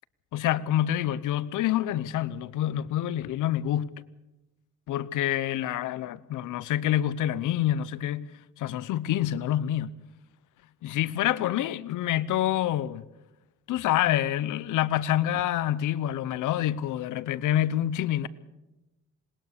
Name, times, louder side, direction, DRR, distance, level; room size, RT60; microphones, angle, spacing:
voice 1, 0.3-3.9 4.9-8.3 8.6-9.9 10.8-13.0 13.7-18.3, left 12 dB, 80° left, 0.8 m, -27 dB
20.0 x 19.5 x 6.7 m
cardioid pair, 90°, 30 cm